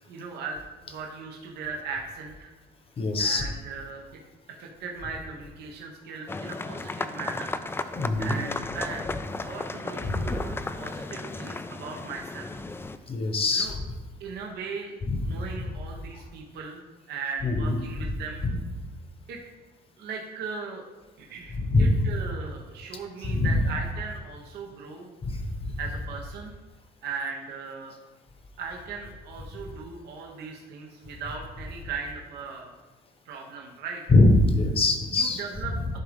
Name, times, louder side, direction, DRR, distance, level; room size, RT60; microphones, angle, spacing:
voice 1, 0.1-2.5 3.2-4.0 4.6-7.5 8.2-9.0 9.4-12.5 13.5-13.8 14.2-16.8 17.1-18.5 19.3-19.4 20.0-20.8 21.2-25.1 25.8-26.5 27.0-27.9 28.6-32.8 33.2-34.0 35.1-35.7, right 5 dB, 80° right, 0 dB, 1.0 m, -38 dB
voice 2, 3.0-3.4 7.9-8.4 10.0-10.4 13.1-13.8 15.0-15.6 17.4-18.1 18.4-18.6 21.6-22.1 23.2-23.6 25.2-25.5 34.1-35.4, left 2 dB, 35° left, 5 dB, 1.0 m, -23 dB
sound 1, 6.3-13.0, left 3 dB, 15° left, 0.3 m, -35 dB
11.0 x 3.7 x 3.5 m, 1.2 s
cardioid pair, 110°, 17 cm